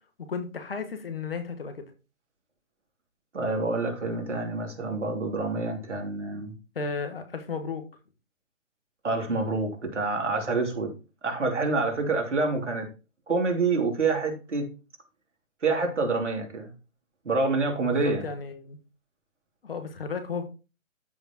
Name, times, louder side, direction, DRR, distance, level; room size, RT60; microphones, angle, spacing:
voice 1, 0.3-1.8 6.7-7.8 17.9-18.8 19.6-20.4, left 5 dB, 45° left, 1.5 m, -34 dB
voice 2, 3.3-6.5 9.0-10.9 11.2-12.9 13.3-14.7 15.6-16.7 17.2-18.3, right 3 dB, 60° right, 2.9 m, -27 dB
13.0 x 5.3 x 3.0 m
figure-of-eight pair, 140°, 40 cm